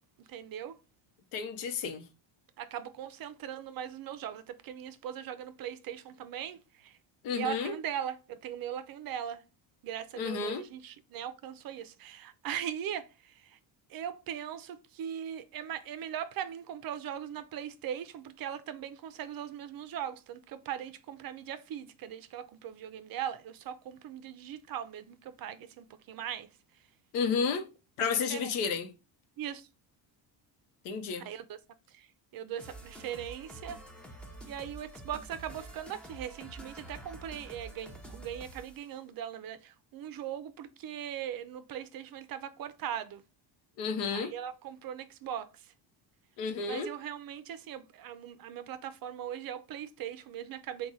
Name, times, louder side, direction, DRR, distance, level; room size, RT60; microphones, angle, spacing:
voice 1, 0.2-0.8 2.6-7.0 7.3-9.4 9.8-13.6 13.9-26.5 28.3-28.5 29.4-29.7 31.2-31.6 31.9-32.1 32.3-33.8 34.5-43.2 44.1-45.5 46.6-50.9, right 10 dB, 45° right, 0.5 m, -40 dB
voice 2, 1.3-2.0 7.2-7.8 10.1-10.7 27.1-27.7 28.0-28.9 30.8-31.3 43.8-44.3 46.4-46.9, left 5 dB, 90° left, 0.8 m, -31 dB
sound 1, 32.6-38.9, right 1 dB, ahead, 0.6 m, -48 dB
3.6 x 2.3 x 4.0 m
cardioid pair, 105°, 49 cm